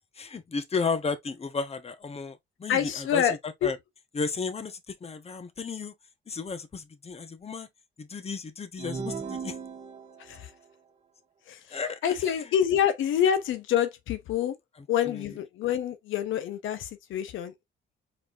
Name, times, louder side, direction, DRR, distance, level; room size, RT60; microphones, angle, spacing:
voice 1, 0.2-3.8 4.1-5.9 6.3-7.7 8.0-9.6 11.7-12.4 15.0-15.2, left 4 dB, 30° left, 1.1 m, -33 dB
voice 2, 2.7-3.7 10.2-10.5 11.5-14.5 14.9-17.5, left 9 dB, 80° left, 0.8 m, -27 dB
sound 1, 8.8-10.4, right 5 dB, 35° right, 1.5 m, -37 dB
4.5 x 4.1 x 2.5 m
cardioid pair, 90°, 20 cm